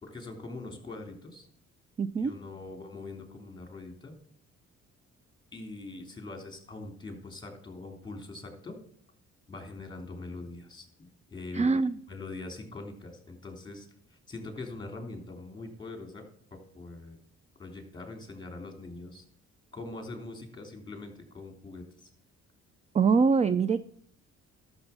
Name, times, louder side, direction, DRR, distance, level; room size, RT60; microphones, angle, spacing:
voice 1, 0.0-1.5 2.2-4.1 5.5-8.8 9.5-11.6 12.1-16.2 16.5-17.2 17.6-19.2 19.7-22.1, left 2 dB, 15° left, 3 dB, 3.2 m, -43 dB
voice 2, 2.0-2.3 11.5-12.0 22.9-23.8, right 5 dB, 25° right, 15 dB, 0.4 m, -24 dB
12.0 x 7.0 x 5.8 m, 0.64 s
cardioid pair, 90°, 30 cm